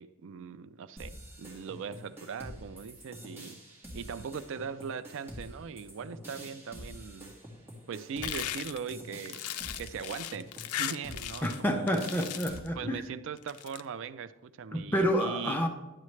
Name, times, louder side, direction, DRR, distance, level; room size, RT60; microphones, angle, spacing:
voice 1, 0.0-3.6 3.9-7.3 7.9-9.4 9.8-11.9 12.7-15.6, right 6 dB, 60° right, 14 dB, 0.3 m, -40 dB
sound 1, 1.0-12.6, equal, 10° right, 1.7 m, -47 dB
sound 2, 8.2-11.6 11.9-12.7 13.4-13.8, left 11 dB, 85° left, 0.4 m, -37 dB
voice 2, 11.4-13.0 14.7-15.7, equal, 10° left, 3 dB, 0.5 m, -29 dB
10.5 x 7.4 x 3.2 m, 1.0 s
head